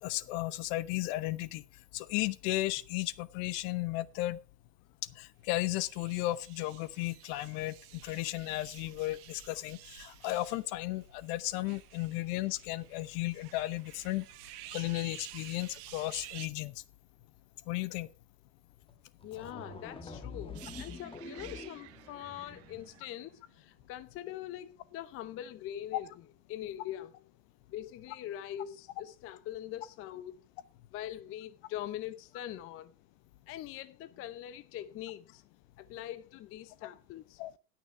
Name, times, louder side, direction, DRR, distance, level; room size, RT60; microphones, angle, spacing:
voice 1, 0.0-1.6 1.9-4.4 5.2-14.2 14.7-16.7 17.7-18.1 37.4-37.5, left 17 dB, 50° left, 1.0 m, -34 dB
sound 1, 5.6-16.5, right 15 dB, 70° right, 1.2 m, -52 dB
sound 2, 18.9-19.0 19.2-23.0, left 4 dB, 10° left, 1.4 m, -46 dB
voice 2, 19.2-26.1 26.5-27.1 27.7-30.4 30.9-32.9 33.5-35.4 35.8-37.6, left 12 dB, 30° left, 0.6 m, -43 dB
sound 3, 20.5-24.4 24.7-24.9, right 14 dB, 30° right, 0.8 m, -53 dB
17.0 x 6.3 x 4.5 m
supercardioid pair, 135°, 47 cm